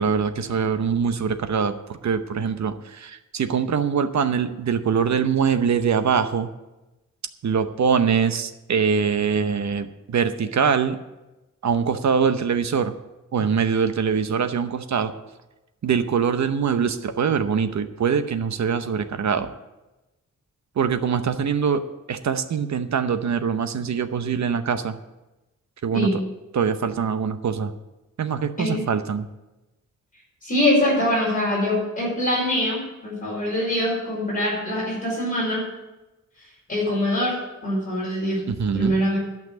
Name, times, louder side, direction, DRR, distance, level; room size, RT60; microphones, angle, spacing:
voice 1, 0.0-6.5 7.4-11.0 11.6-12.9 13.3-15.1 15.8-19.5 20.8-21.8 22.1-25.0 25.8-26.1 26.5-27.7 28.2-29.3 38.5-39.0, right 6 dB, 65° right, 9 dB, 0.8 m, -23 dB
voice 2, 30.4-35.6 36.7-37.4 37.6-38.4 38.7-39.2, left 1 dB, 25° left, -5 dB, 5.3 m, -23 dB
11.5 x 5.9 x 9.2 m, 1.0 s
wide cardioid pair, 175°, 30 cm